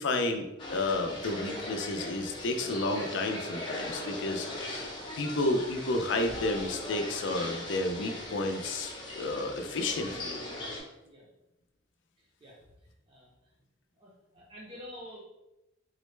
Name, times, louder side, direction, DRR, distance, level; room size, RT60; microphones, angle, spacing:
voice 1, 0.0-10.4, left 2 dB, 75° left, 5 dB, 0.4 m, -31 dB
sound 1, 0.6-10.8, left 1 dB, 25° left, 0.7 m, -39 dB
voice 2, 14.0-15.2, left 1 dB, 30° right, -5 dB, 0.5 m, -47 dB
3.8 x 2.1 x 3.1 m, 0.93 s
head